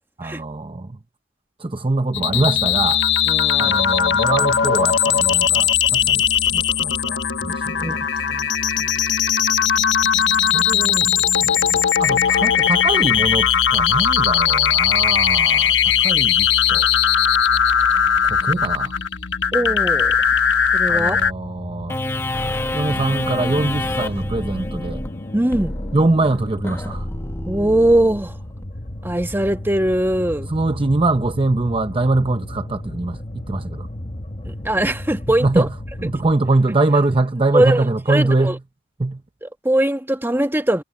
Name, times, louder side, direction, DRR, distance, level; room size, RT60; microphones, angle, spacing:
voice 1, 0.2-1.0 1.6-3.0 3.6-6.2 6.5-8.0 10.5-16.9 18.2-19.0 20.9-22.0 22.7-25.0 25.9-27.1 30.5-33.9 35.4-35.7 36.0-38.6 39.0-39.2, right 2 dB, 30° right, 0.7 m, -23 dB
sound 1, 2.1-21.3, left 8 dB, 90° left, 1.1 m, -18 dB
voice 2, 3.3-3.8 7.8-8.0 8.3-8.5 8.8-9.0 19.5-20.1 20.7-21.2 25.3-25.7 27.5-28.4 29.0-30.5 34.4-35.7 37.5-38.6 39.4-40.8, right 1 dB, 15° right, 1.5 m, -21 dB
sound 2, 20.9-36.4, left 1 dB, 35° left, 1.0 m, -34 dB
sound 3, 21.9-28.7, left 1 dB, 15° left, 1.4 m, -28 dB
head